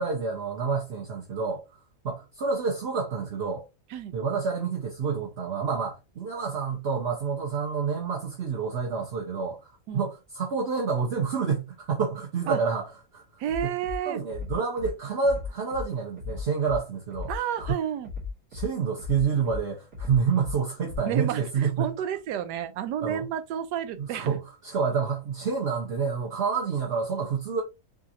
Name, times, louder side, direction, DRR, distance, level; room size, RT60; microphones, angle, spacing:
voice 1, 0.0-1.6 2.0-3.6 4.1-12.9 13.1-13.2 13.6-13.7 14.1-17.3 17.6-17.7 18.5-21.9 23.0-23.3 24.0-27.6, right 5 dB, 50° right, 0.8 m, -28 dB
voice 2, 13.4-14.2 17.3-18.1 21.0-24.4, right 9 dB, 90° right, 1.2 m, -31 dB
Bass drum, 13.5-14.0 14.3-14.9 15.2-15.8 16.2-16.8 17.1-17.7 18.0-18.7 19.0-19.6 19.9-20.5 20.9-21.0, left 6 dB, 75° right, 2.3 m, -35 dB
4.9 x 2.5 x 2.8 m
omnidirectional pair, 1.7 m